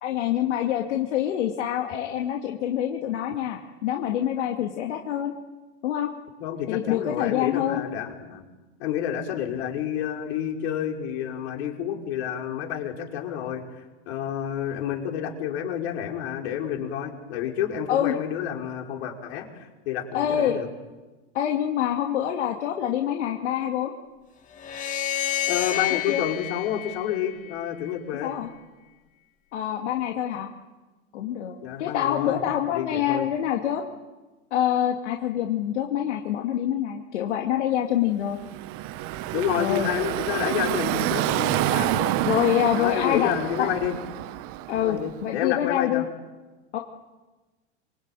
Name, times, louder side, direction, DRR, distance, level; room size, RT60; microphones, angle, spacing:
voice 1, 0.0-5.3 5.8-6.1 6.7-7.8 17.9-18.1 20.1-20.6 21.3-23.9 25.9-26.2 28.2-28.5 29.5-30.5 31.1-33.8 34.5-38.4 39.6-39.9 42.2-43.3 43.6-43.7 44.7-46.0 46.7-46.8, left 11 dB, 80° left, 2 dB, 2.5 m, -26 dB
voice 2, 6.4-8.5 8.8-13.6 14.1-20.7 25.5-28.3 31.6-32.4 32.7-33.3 39.3-42.2 42.7-44.0 44.7-46.1, left 10 dB, 65° left, 2 dB, 5.2 m, -29 dB
sound 1, 24.6-27.9, left 12 dB, 20° left, 1.6 m, -29 dB
Car passing by / Traffic noise roadway noise, 38.3-45.2, right 14 dB, 40° right, 1.1 m, -28 dB
26.5 x 23.5 x 9.2 m, 1.2 s
supercardioid pair, 140°, 34 cm